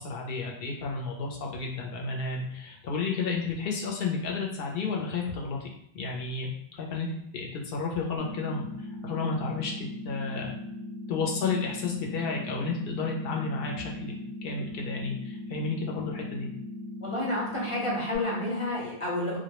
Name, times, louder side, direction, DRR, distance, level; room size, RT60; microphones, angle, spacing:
voice 1, 0.0-5.7 5.9-6.5 6.8-8.6 9.0-10.6 11.1-14.1 14.4-16.5, left 4 dB, 70° left, -1 dB, 0.7 m, -32 dB
sound 1, 8.2-18.2, left 1 dB, 90° left, 1.0 m, -39 dB
voice 2, 17.0-19.4, left 1 dB, 35° left, -5 dB, 0.7 m, -30 dB
2.2 x 2.0 x 2.9 m, 0.76 s
omnidirectional pair, 1.0 m